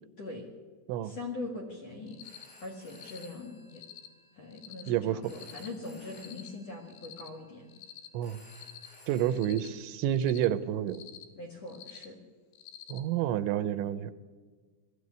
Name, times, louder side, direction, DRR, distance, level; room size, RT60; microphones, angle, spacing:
voice 1, 1.0-2.2 2.6-3.8 4.3-7.7 9.3-9.6 11.4-12.2, left 2 dB, 50° left, 1 dB, 2.2 m, -42 dB
Telephone, 2.0-9.9, left 1 dB, 90° left, 10.0 m, -58 dB
Cricket, 2.1-2.5 2.9-3.3 3.7-4.1 4.5-4.9 5.3-5.7 6.1-6.5 6.9-7.3 7.7-8.1 8.5-8.9 9.3-9.7 10.1-10.5 10.9-11.2 11.7-12.1 12.5-13.0, left 11 dB, 70° left, 2.9 m, -48 dB
voice 2, 4.9-5.2 8.1-8.4 9.1-11.0 12.9-14.1, right 11 dB, 85° right, 14 dB, 3.0 m, -29 dB
20.0 x 14.0 x 9.5 m, 1.5 s
omnidirectional pair, 5.4 m